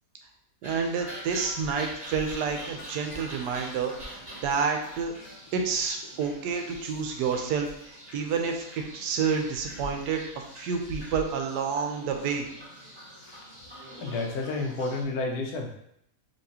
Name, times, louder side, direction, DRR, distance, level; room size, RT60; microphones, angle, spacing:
sound 1, 0.6-15.0, equal, 20° right, 1.4 m, -45 dB
voice 1, 0.6-5.1 5.5-12.5, right 5 dB, 90° right, 4 dB, 1.2 m, -29 dB
sound 2, 1.1-5.4 5.8-5.9 6.2-6.3 6.5-6.7 7.0-7.1, left 1 dB, 45° left, 1.1 m, -47 dB
voice 2, 14.0-15.7, left 3 dB, 75° left, 2 dB, 1.0 m, -31 dB
4.2 x 2.9 x 2.7 m, 0.75 s
omnidirectional pair, 1.7 m